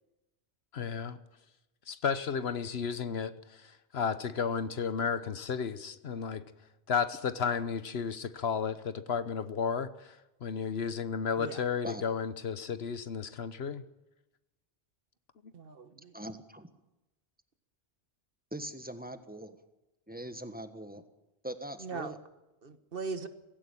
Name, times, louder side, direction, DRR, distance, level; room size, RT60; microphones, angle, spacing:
voice 1, 0.7-1.2 1.9-3.3 3.9-6.4 6.9-9.9 10.4-13.8, left 6 dB, 70° left, 1.2 m, -33 dB
voice 2, 15.5-16.1 21.8-22.1 22.6-23.3, right 4 dB, 55° right, 1.4 m, -39 dB
voice 3, 16.1-16.7 18.5-19.6 20.1-21.0 21.4-22.2, right 1 dB, 10° right, 1.3 m, -41 dB
17.0 x 16.5 x 9.9 m
omnidirectional pair, 1.1 m